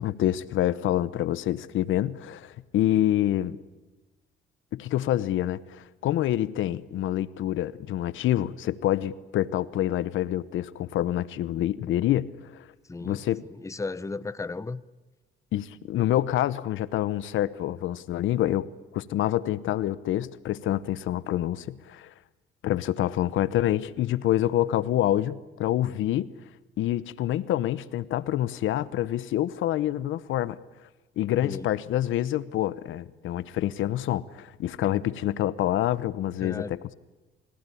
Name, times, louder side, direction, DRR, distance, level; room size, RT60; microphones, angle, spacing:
voice 1, 0.0-3.6 4.7-12.6 13.0-13.4 15.5-18.7 18.9-22.1 22.6-26.3 26.8-30.6 31.2-36.9, left 13 dB, 80° left, 0.9 m, -27 dB
voice 2, 12.9-13.2 13.5-14.8 31.4-31.7 36.4-36.7, left 3 dB, 15° left, 0.8 m, -34 dB
26.5 x 16.5 x 9.9 m
cardioid pair, 90°, 20 cm